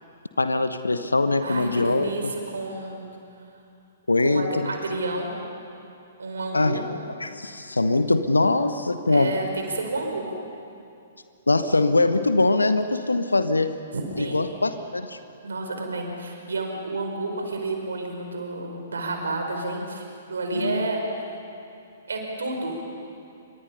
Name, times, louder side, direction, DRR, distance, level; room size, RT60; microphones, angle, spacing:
voice 1, 0.4-2.1 4.1-4.7 6.5-6.8 7.2-9.3 11.5-13.7 14.2-15.2 20.5-20.9, left 2 dB, 75° left, 10 dB, 1.1 m, -22 dB
voice 2, 1.4-3.0 4.2-5.4 6.2-6.8 9.1-10.3 13.9-14.5 15.4-21.0 22.1-22.7, right 2 dB, 65° right, 3 dB, 4.7 m, -30 dB
28.5 x 25.0 x 5.6 m, 2.6 s
figure-of-eight pair, 115°, 0 cm